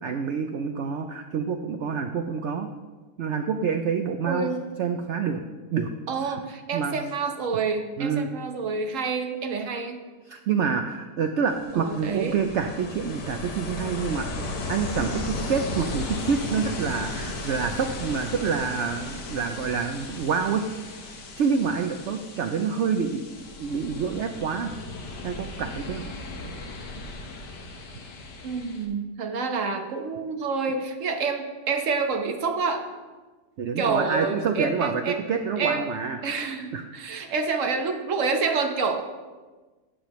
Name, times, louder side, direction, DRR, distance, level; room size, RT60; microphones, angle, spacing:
voice 1, 0.0-2.7 3.2-4.5 4.8-5.4 5.7-5.9 6.2-6.4 6.7-6.9 8.0-8.3 10.3-14.3 14.7-20.7 21.4-23.2 23.6-24.7 25.2-26.0 33.6-36.2 36.7-36.8, right 6 dB, 70° right, 6 dB, 0.7 m, -27 dB
voice 2, 4.3-4.7 6.1-10.0 11.7-12.4 28.4-32.9 33.8-35.2 35.6-35.9 36.2-39.0, right 4 dB, 55° right, 5 dB, 1.3 m, -28 dB
Ocean, 11.5-28.9, left 2 dB, 80° left, 1.7 m, -36 dB
12.5 x 8.4 x 3.1 m, 1.3 s
omnidirectional pair, 1.8 m